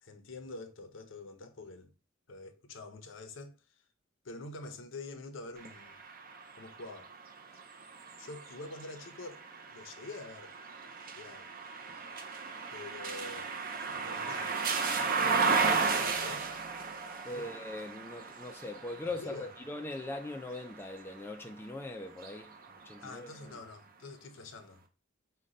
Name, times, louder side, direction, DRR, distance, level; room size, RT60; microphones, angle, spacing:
voice 1, 0.0-1.9 2.3-3.6 4.2-6.0 6.6-7.1 8.2-9.4 9.7-10.6 11.2-11.5 12.7-13.6 13.8-14.6 15.2-16.5 17.3-17.5 19.2-19.5 23.0-24.8, left 2 dB, 65° left, 0.6 m, -46 dB
sound 1, 5.6-21.5 22.1-23.3, right 4 dB, 45° right, 0.6 m, -35 dB
voice 2, 17.3-22.5 22.8-23.5, left 2 dB, 10° left, 0.3 m, -41 dB
5.1 x 2.2 x 3.8 m
head